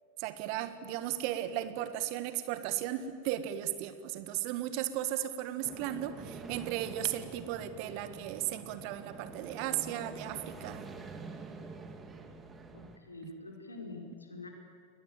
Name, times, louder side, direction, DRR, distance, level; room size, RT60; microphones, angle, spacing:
voice 1, 0.2-10.9 13.2-13.3, right 12 dB, 45° right, 11 dB, 1.6 m, -35 dB
sound 1, 5.6-13.0, right 4 dB, 15° right, 2.5 m, -46 dB
voice 2, 12.7-14.5, left 3 dB, 80° left, 2 dB, 5.0 m, -46 dB
29.0 x 21.5 x 8.9 m, 2.1 s
figure-of-eight pair, 90°, 0 cm